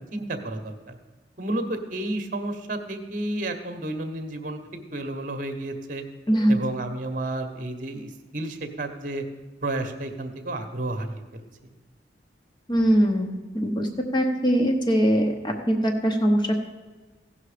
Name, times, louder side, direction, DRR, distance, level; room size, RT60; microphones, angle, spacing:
voice 1, 0.1-1.0 1.4-6.0 6.5-9.2 9.6-11.4, right 2 dB, 45° right, 7 dB, 1.0 m, -31 dB
voice 2, 6.3-6.6 12.7-13.9 14.1-16.7, equal, 25° left, 3 dB, 1.0 m, -22 dB
16.5 x 5.6 x 5.0 m, 1.2 s
head